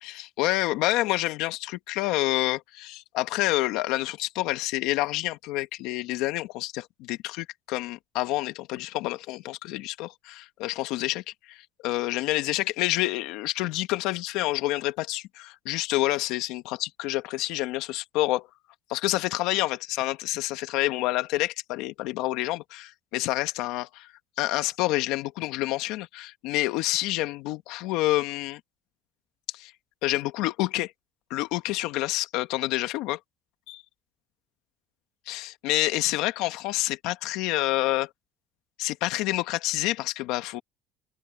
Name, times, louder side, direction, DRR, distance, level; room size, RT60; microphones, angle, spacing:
voice 1, 0.0-18.5 18.9-24.1 24.4-28.6 29.5-29.7 30.0-30.9 31.3-33.2 33.7-33.8 35.3-38.1 38.8-40.6, left 18 dB, 75° left, 1.9 m, -28 dB
open air
cardioid pair, 135°, 0 cm